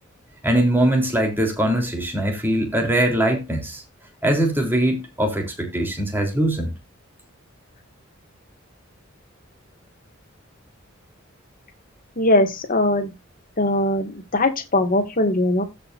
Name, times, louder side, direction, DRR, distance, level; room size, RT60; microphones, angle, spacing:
voice 1, 0.4-3.8 4.2-6.7, right 1 dB, 10° right, 3.4 m, -21 dB
voice 2, 12.2-13.1 13.6-15.6, left 1 dB, 45° left, 1.9 m, -20 dB
16.0 x 5.7 x 2.5 m
head